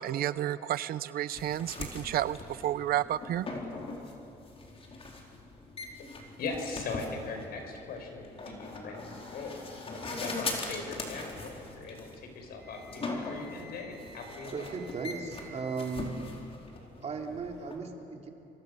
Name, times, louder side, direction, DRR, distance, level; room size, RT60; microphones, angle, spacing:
voice 1, 0.0-3.5, right 12 dB, 65° right, 15 dB, 0.7 m, -31 dB
sound 1, 1.3-17.8, left 3 dB, 35° left, 4.5 m, -41 dB
voice 2, 6.4-14.7, left 3 dB, 65° left, 4 dB, 5.7 m, -40 dB
Wind instrument woodwind instrument, 12.6-16.1, right 1 dB, ahead, 6.6 m, -52 dB
voice 3, 14.5-16.3 17.0-18.3, right 4 dB, 40° right, 1 dB, 3.6 m, -36 dB
29.0 x 25.0 x 6.9 m, 2.8 s
cardioid pair, 110°, 17 cm